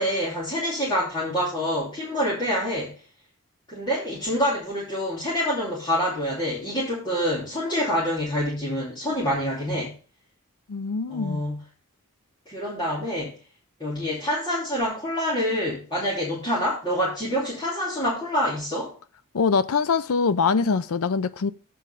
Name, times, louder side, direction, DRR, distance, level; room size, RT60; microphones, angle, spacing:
voice 1, 0.0-2.9 3.7-9.9 11.1-11.6 12.5-13.3 13.8-18.9, equal, 20° left, 2.8 m, -26 dB
voice 2, 10.7-11.4 19.3-21.5, left 5 dB, 75° left, 0.5 m, -23 dB
7.9 x 5.1 x 6.7 m
head